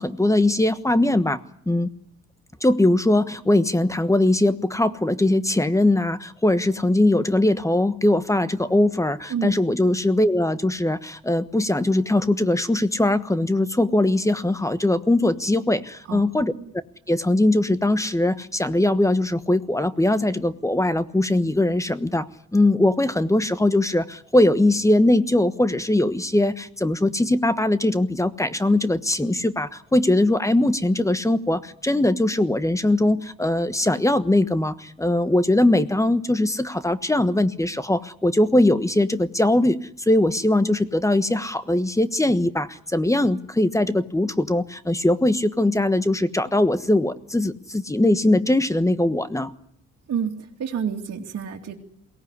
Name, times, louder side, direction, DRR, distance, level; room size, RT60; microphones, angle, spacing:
voice 1, 0.0-1.4 1.7-1.9 2.6-16.5 17.1-22.3 22.5-39.8 40.1-49.5, left 1 dB, 10° left, 13 dB, 1.3 m, -21 dB
voice 2, 50.1-51.8, right 7 dB, 60° right, 0 dB, 2.6 m, -29 dB
22.5 x 18.0 x 9.7 m, 0.67 s
cardioid pair, 90°, 30 cm